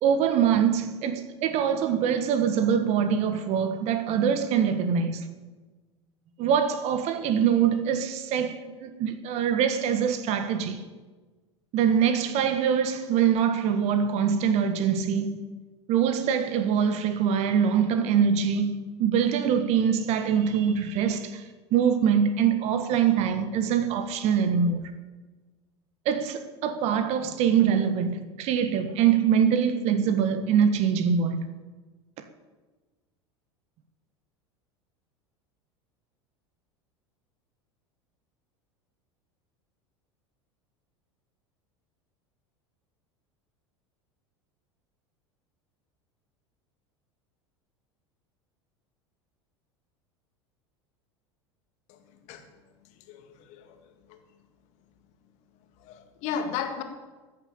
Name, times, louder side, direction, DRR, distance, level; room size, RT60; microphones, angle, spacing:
voice 1, 0.0-5.2 6.4-10.8 11.7-15.4 15.9-18.7 19.0-21.4 21.7-24.9 26.0-31.4, right 7 dB, 45° right, 1.4 m, -24 dB
voice 2, 53.1-53.8 54.1-54.2 55.8-56.8, left 7 dB, 50° left, 1.9 m, -34 dB
14.5 x 7.9 x 8.6 m
figure-of-eight pair, 75°, 15 cm